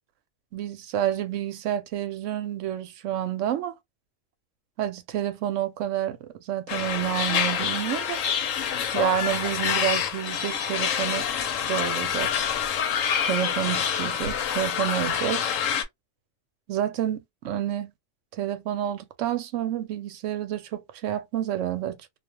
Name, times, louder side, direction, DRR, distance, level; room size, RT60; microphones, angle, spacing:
voice 1, 0.5-3.8 4.8-8.2 8.9-11.3 11.6-12.3 13.2-15.6 16.7-17.9 18.4-22.0, right 11 dB, 80° right, 0.9 m, -29 dB
sound 1, 6.7-15.8, left 8 dB, 85° left, 1.0 m, -27 dB
2.4 x 2.2 x 2.9 m
omnidirectional pair, 1.3 m